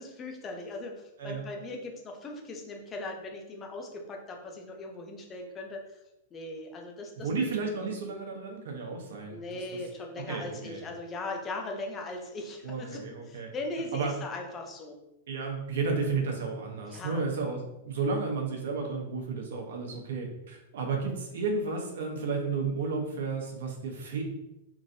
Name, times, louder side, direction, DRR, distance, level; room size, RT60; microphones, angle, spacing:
voice 1, 0.0-5.8 6.3-7.9 9.3-13.0 13.3-14.9 16.8-17.2, left 2 dB, 15° left, 2 dB, 0.3 m, -39 dB
voice 2, 7.2-9.8 10.2-10.9 12.6-13.5 13.9-14.1 15.3-24.2, right 4 dB, 65° right, 1 dB, 0.7 m, -32 dB
3.1 x 2.5 x 2.6 m, 0.92 s
supercardioid pair, 180°, 0 cm